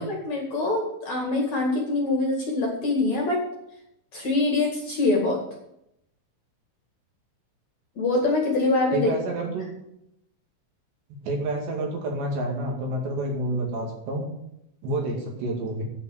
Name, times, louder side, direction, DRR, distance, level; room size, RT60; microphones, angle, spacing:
voice 1, 0.0-3.4 4.1-5.4 8.0-9.1 9.4-9.5, left 2 dB, 45° left, -1 dB, 2.6 m, -24 dB
voice 2, 8.9-9.7 11.2-14.2 14.8-15.8, right 1 dB, 65° right, 1 dB, 4.2 m, -29 dB
9.4 x 8.1 x 8.4 m, 0.81 s
omnidirectional pair, 5.6 m